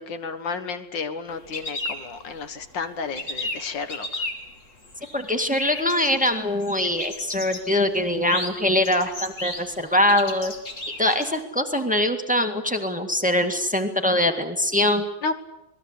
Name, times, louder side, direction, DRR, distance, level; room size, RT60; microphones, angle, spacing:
voice 1, 0.0-4.3 15.2-15.3, left 4 dB, 80° left, 10 dB, 2.2 m, -32 dB
sound 1, 1.3-2.7 3.0-11.3, left 2 dB, 45° left, 3.1 m, -34 dB
voice 2, 5.1-10.5 11.0-15.1, left 1 dB, 5° right, 6 dB, 1.9 m, -23 dB
26.5 x 20.0 x 8.3 m, 0.88 s
omnidirectional pair, 1.9 m